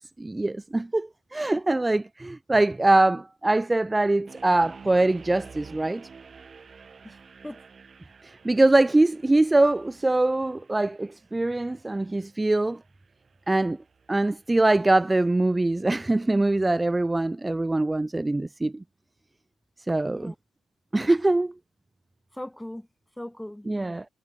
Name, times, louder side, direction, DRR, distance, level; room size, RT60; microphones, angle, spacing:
voice 1, 0.2-6.1 8.2-12.8 13.5-13.8 14.1-18.8 19.9-20.3 20.9-21.5 23.7-24.1, right 2 dB, 15° right, 0.4 m, -23 dB
sound 1, 4.3-15.3, right 5 dB, 40° right, 4.4 m, -50 dB
voice 2, 20.0-20.4 22.3-22.9 23.2-23.9, left 1 dB, 5° left, 2.3 m, -39 dB
cardioid pair, 90°, 0 cm